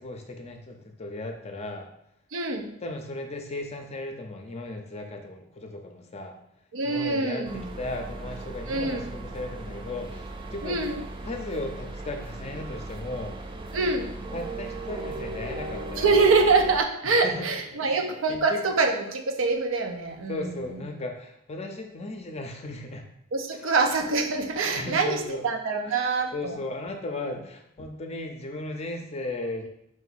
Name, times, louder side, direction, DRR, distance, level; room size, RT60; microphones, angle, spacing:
voice 1, 0.0-1.9 2.8-6.3 6.8-10.9 11.2-13.3 14.3-16.3 17.0-17.5 17.8-18.6 20.3-23.0 23.5-23.7 24.7-25.5 25.8-29.7, left 2 dB, 30° left, 4 dB, 0.5 m, -36 dB
voice 2, 2.3-2.7 6.7-7.6 8.7-9.0 10.6-11.0 13.7-14.1 16.0-20.5 23.3-25.2 25.4-26.5, right 4 dB, 75° right, 4 dB, 0.6 m, -24 dB
sound 1, 7.4-16.8, right 2 dB, 25° right, 0.3 m, -37 dB
4.5 x 2.6 x 4.0 m, 0.75 s
head